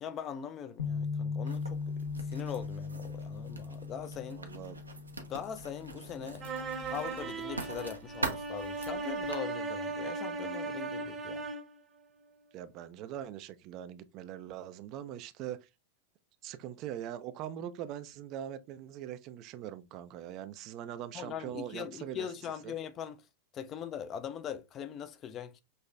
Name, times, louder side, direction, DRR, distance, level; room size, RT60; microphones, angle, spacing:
voice 1, 0.0-4.4 5.3-6.4 6.9-11.4 21.1-23.2 23.5-25.6, left 8 dB, 30° left, 0.4 m, -41 dB
Bass guitar, 0.8-7.0, left 5 dB, 70° left, 0.9 m, -39 dB
Writing, 1.5-9.4, right 3 dB, 80° right, 0.6 m, -43 dB
voice 2, 4.4-4.8 12.5-15.7 16.4-22.3 22.6-22.8, right 11 dB, 40° right, 0.4 m, -42 dB
sound 1, 6.4-11.8, right 3 dB, 25° right, 0.8 m, -37 dB
5.4 x 3.0 x 2.3 m
figure-of-eight pair, 90°, 0 cm